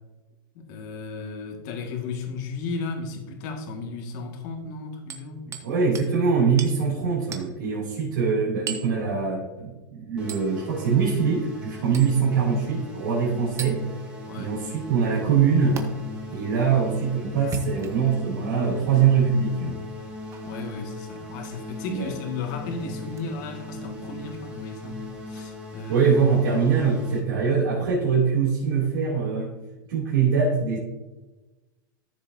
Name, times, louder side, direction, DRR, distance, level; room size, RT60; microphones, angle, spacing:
voice 1, 0.5-5.5 14.2-14.5 20.4-26.1, left 4 dB, 55° left, 2.0 m, -34 dB
Hammer, 5.1-5.7 6.0-6.1 6.6-6.8 7.3-7.5 8.7-8.9 10.3-10.5 11.9-12.2 13.6-13.8 15.8-15.9 17.4-18.2 18.9-19.0 20.3-20.5 21.4-21.6 23.1-23.2, right 6 dB, 25° right, 1.2 m, -36 dB
voice 2, 5.5-13.8 14.4-15.8 16.3-19.8 21.9-22.1 25.3-25.4 25.9-29.5 29.9-30.8, right 6 dB, 85° right, 2.9 m, -23 dB
sound 1, 10.2-27.2, left 1 dB, 5° right, 2.0 m, -39 dB
14.0 x 7.0 x 2.8 m
supercardioid pair, 130°, 12 cm